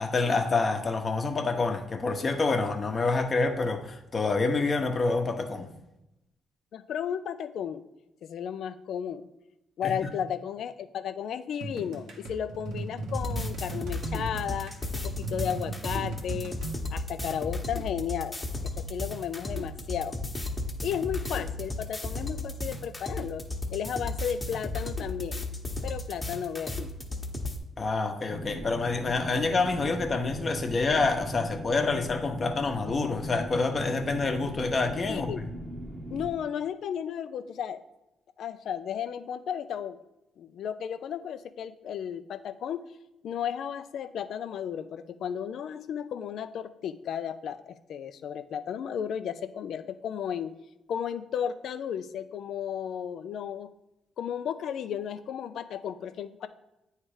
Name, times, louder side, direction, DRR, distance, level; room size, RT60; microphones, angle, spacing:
voice 1, 0.0-5.7 9.8-10.1 27.8-35.5, left 3 dB, 35° left, 0.9 m, -27 dB
voice 2, 6.7-7.8 8.2-9.2 9.8-16.6 16.9-18.4 18.9-20.2 20.8-23.4 23.7-25.4 25.8-26.8 35.1-35.4 36.1-37.8 38.4-40.0 40.4-42.8 43.2-50.5 50.9-53.7 54.2-56.5, left 8 dB, 70° left, 0.4 m, -34 dB
sound 1, 11.6-16.8, right 2 dB, 80° right, 1.1 m, -37 dB
sound 2, 13.1-27.6, left 2 dB, 20° left, 1.1 m, -35 dB
sound 3, 28.3-36.3, equal, 30° right, 0.9 m, -38 dB
8.8 x 3.2 x 4.9 m
cardioid pair, 90°, 0 cm